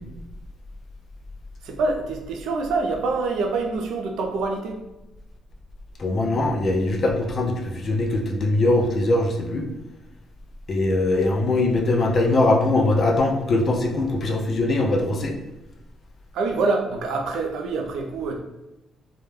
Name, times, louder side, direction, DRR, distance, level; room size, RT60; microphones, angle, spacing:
voice 1, 1.6-4.8 16.3-18.4, right 3 dB, 80° right, 2 dB, 0.4 m, -25 dB
voice 2, 6.0-9.7 10.7-15.4, left 2 dB, 50° left, 1 dB, 0.4 m, -21 dB
2.2 x 2.1 x 3.1 m, 0.98 s
cardioid pair, 90°, 0 cm